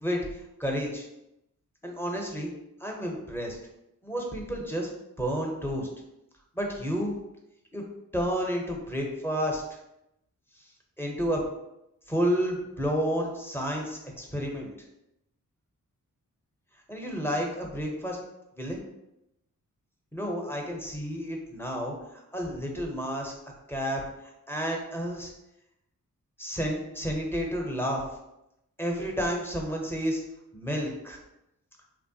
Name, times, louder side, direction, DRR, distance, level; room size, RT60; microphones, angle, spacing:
voice 1, 0.6-1.1 1.8-2.5 2.8-3.6 4.0-4.9 5.2-5.9 6.5-7.1 7.7-7.8 8.1-9.6 11.0-11.4 12.1-14.7 16.9-18.2 18.6-18.8 20.1-23.3 23.7-24.0 24.5-25.3 26.4-28.0 28.8-30.2 30.5-31.2, equal, 5° left, 0 dB, 0.6 m, -30 dB
3.1 x 2.1 x 2.7 m, 0.87 s
cardioid pair, 60°, 34 cm